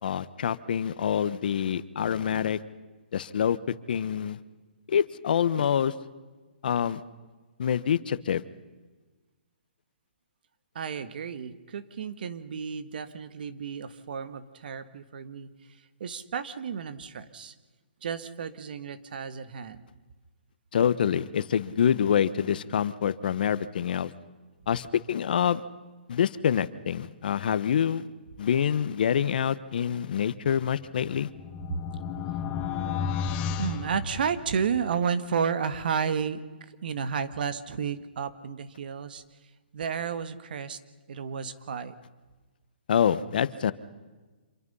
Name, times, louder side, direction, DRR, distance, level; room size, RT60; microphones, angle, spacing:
voice 1, 0.0-2.6 3.1-3.6 3.9-4.4 4.9-5.9 6.6-7.0 7.6-8.4 20.7-24.1 24.7-25.6 26.1-28.0 28.4-31.3 42.9-43.7, left 8 dB, 60° left, 15 dB, 1.2 m, -26 dB
voice 2, 10.7-15.5 16.0-17.5 18.0-19.8 33.3-36.4 36.8-39.2 39.7-40.8 41.1-41.9, right 6 dB, 60° right, 12 dB, 1.8 m, -32 dB
sound 1, 30.8-34.8, left 7 dB, 25° left, 1.2 m, -33 dB
27.0 x 23.0 x 5.6 m, 1.3 s
hypercardioid pair, 150°, 6 cm